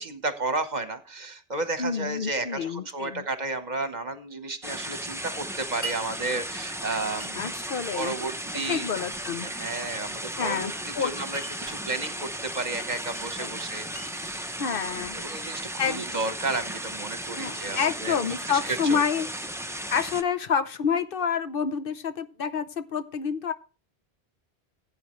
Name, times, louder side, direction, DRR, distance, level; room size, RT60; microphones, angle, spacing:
voice 1, 0.0-7.5 7.9-8.9 9.4-14.6 15.1-18.2 18.5-19.0, right 3 dB, 45° right, 9 dB, 1.3 m, -32 dB
voice 2, 1.8-3.2 7.3-8.1 8.7-9.5 10.4-11.1 13.4-13.5 14.6-15.2 15.8-16.0 17.4-19.3 19.9-23.5, left 6 dB, 60° left, 11 dB, 0.9 m, -28 dB
sound 1, 4.6-20.2, right 1 dB, 5° right, 0.6 m, -35 dB
Glass, 5.8-6.0 7.2-7.7 8.6-9.3 10.1-10.8 11.3-11.9 12.9-13.3 13.6-15.3, right 2 dB, 30° left, 3.1 m, -43 dB
15.5 x 8.9 x 3.1 m, 0.34 s
omnidirectional pair, 1.0 m